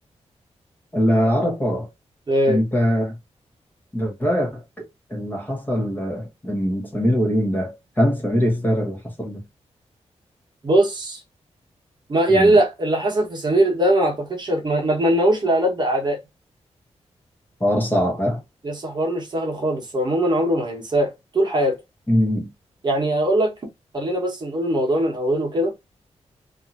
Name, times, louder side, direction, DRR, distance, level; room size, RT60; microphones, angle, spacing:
voice 1, 0.9-1.9 2.5-3.2 3.9-9.4 12.3-12.6 17.6-18.4 22.1-22.5, equal, 15° left, 1.0 m, -22 dB
voice 2, 2.3-2.6 10.6-11.2 12.1-16.2 18.6-21.8 22.8-23.5 23.9-25.7, right 1 dB, 40° right, 1.1 m, -20 dB
2.8 x 2.6 x 2.5 m
wide cardioid pair, 145°, 12 cm